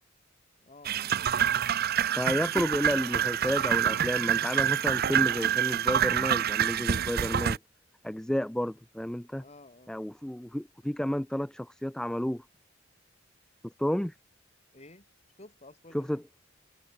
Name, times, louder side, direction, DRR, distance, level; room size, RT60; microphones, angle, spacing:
voice 1, 0.6-1.1 9.3-9.9 14.7-15.1 15.4-16.2, left 2 dB, 35° left, 4.2 m, -52 dB
sound 1, 0.8-7.6, right 9 dB, 50° right, 0.6 m, -27 dB
voice 2, 2.1-7.6 8.0-9.4 9.9-12.4 13.8-14.1 15.9-16.2, equal, 5° left, 0.3 m, -31 dB
head